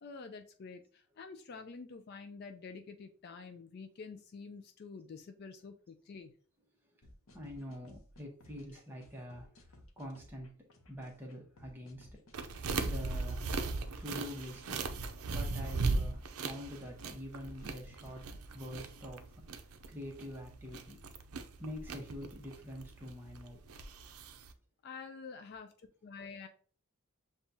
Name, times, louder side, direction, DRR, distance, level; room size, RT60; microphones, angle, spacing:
voice 1, 0.0-6.3 24.8-25.7 26.0-26.5, left 4 dB, 45° left, 7 dB, 0.3 m, -48 dB
sound 1, 7.0-18.4, left 1 dB, 70° left, 0.8 m, -58 dB
voice 2, 7.3-9.7 10.0-10.6 10.9-12.1 12.8-13.5 14.0-14.9 15.3-18.3 18.5-19.5 19.9-21.0 21.6-23.6, left 1 dB, 10° right, 0 dB, 0.9 m, -45 dB
sound 2, 12.3-24.5, right 3 dB, 80° right, 0.5 m, -38 dB
7.0 x 2.4 x 2.7 m, 0.43 s
head